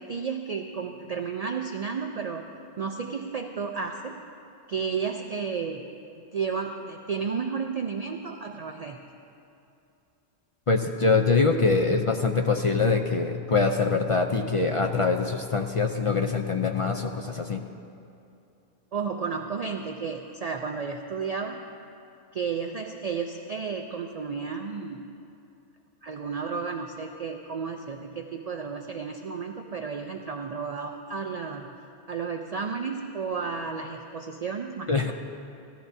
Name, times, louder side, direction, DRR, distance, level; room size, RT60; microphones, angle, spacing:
voice 1, 0.0-2.5 2.8-4.2 4.7-5.9 6.3-9.0 18.9-21.6 22.3-25.1 26.0-31.7 32.1-35.1, right 5 dB, 50° right, 3 dB, 0.5 m, -32 dB
voice 2, 10.7-17.6 34.9-35.1, left 4 dB, 45° left, 4 dB, 0.4 m, -24 dB
17.0 x 13.0 x 2.7 m, 2.6 s
omnidirectional pair, 1.1 m